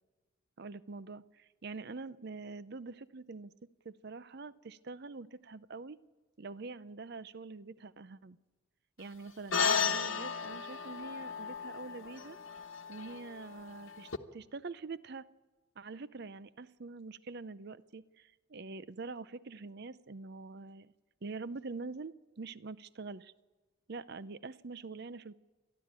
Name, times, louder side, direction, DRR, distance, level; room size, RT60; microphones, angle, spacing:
voice 1, 0.6-3.5 3.8-6.0 6.4-8.4 9.0-12.4 12.9-15.3 15.8-20.9 21.2-23.3 23.9-25.4, right 3 dB, 50° right, 16 dB, 0.6 m, -45 dB
sound 1, 9.5-14.2, left 6 dB, 65° left, 1.2 m, -34 dB
30.0 x 12.0 x 8.9 m, 1.3 s
head